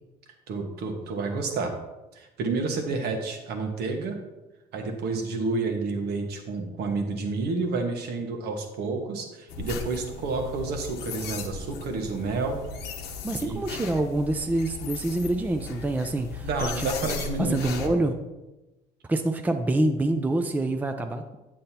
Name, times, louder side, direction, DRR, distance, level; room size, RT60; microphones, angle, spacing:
voice 1, 0.5-1.7 2.1-4.2 4.7-12.6 13.4-13.6 16.4-18.0, right 3 dB, 75° right, 4 dB, 1.3 m, -30 dB
sound 1, 9.5-17.9, left 5 dB, 85° left, 0.9 m, -37 dB
voice 2, 13.2-16.9 17.4-18.2 19.1-21.2, right 2 dB, 10° right, 6 dB, 0.5 m, -26 dB
8.5 x 7.8 x 2.8 m, 1.0 s
cardioid pair, 110°, 17 cm